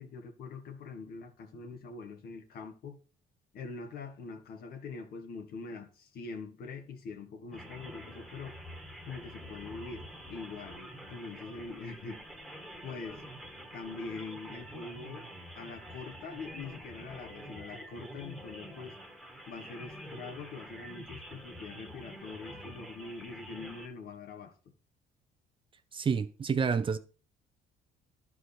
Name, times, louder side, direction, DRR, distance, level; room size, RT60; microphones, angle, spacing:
voice 1, 0.0-3.0 3.5-8.6 9.1-12.2 12.8-13.2 13.7-15.3 15.6-19.0 19.5-24.5, left 4 dB, 65° left, 1.5 m, -43 dB
sound 1, 7.5-23.9, equal, ahead, 1.5 m, -47 dB
voice 2, 25.9-27.0, right 6 dB, 30° right, 0.7 m, -29 dB
11.5 x 4.7 x 4.3 m
cardioid pair, 110°, 17 cm